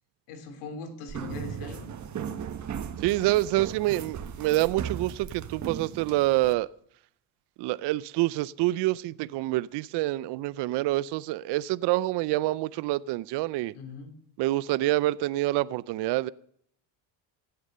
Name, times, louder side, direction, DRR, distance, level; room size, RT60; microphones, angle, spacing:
voice 1, 0.3-1.9 13.7-14.1, left 4 dB, 85° left, 3.3 m, -40 dB
sound 1, 1.1-6.5, right 8 dB, 35° right, 1.3 m, -37 dB
voice 2, 3.0-6.7 7.6-13.7 14.4-16.3, right 17 dB, 55° right, 0.5 m, -27 dB
16.0 x 9.6 x 6.6 m
cardioid pair, 130°, 48 cm